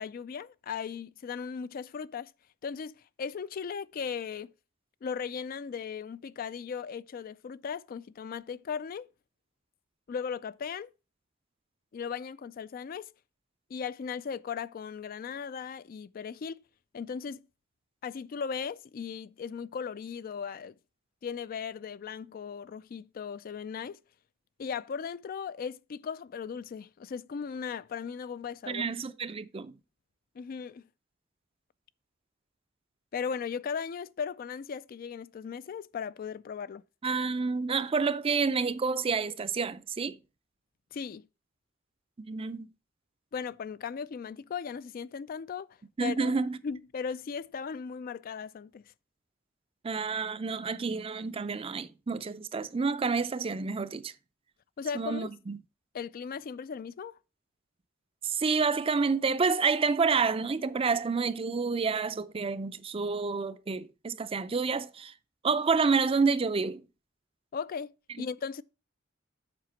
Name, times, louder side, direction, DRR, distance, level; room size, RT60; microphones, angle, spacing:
voice 1, 0.0-2.3 2.6-4.5 5.0-9.1 10.1-10.9 11.9-13.1 13.7-16.6 16.9-17.4 18.0-20.7 21.2-24.0 24.6-28.8 30.4-30.8 33.1-36.8 40.9-41.3 43.3-46.3 46.6-48.8 54.8-55.3 55.9-57.2 67.5-68.6, left 6 dB, 45° left, 0.3 m, -37 dB
voice 2, 28.7-29.8 37.0-40.2 42.2-42.7 46.0-46.6 49.8-54.1 54.9-55.6 58.2-65.1 65.4-66.9 68.2-68.3, right 4 dB, 30° right, 0.4 m, -29 dB
7.6 x 5.0 x 5.7 m
head